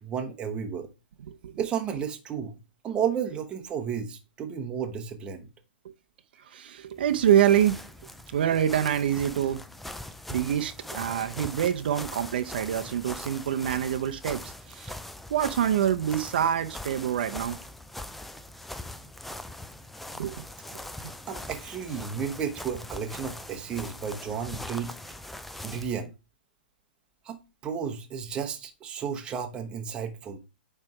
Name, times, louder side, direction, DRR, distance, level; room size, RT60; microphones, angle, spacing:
voice 1, 0.0-0.9 1.6-2.5 2.8-5.5 21.3-24.9 25.6-26.1 27.2-30.4, right 7 dB, 15° right, 1.0 m, -32 dB
voice 2, 1.3-1.7 5.8-5.9 6.4-7.8 8.3-9.6 10.3-15.0 15.3-17.6 20.2-20.4, right 10 dB, 60° right, 0.7 m, -26 dB
sound 1, 6.9-26.0, left 1 dB, ahead, 0.3 m, -41 dB
9.1 x 3.3 x 4.9 m
hypercardioid pair, 155°, 6 cm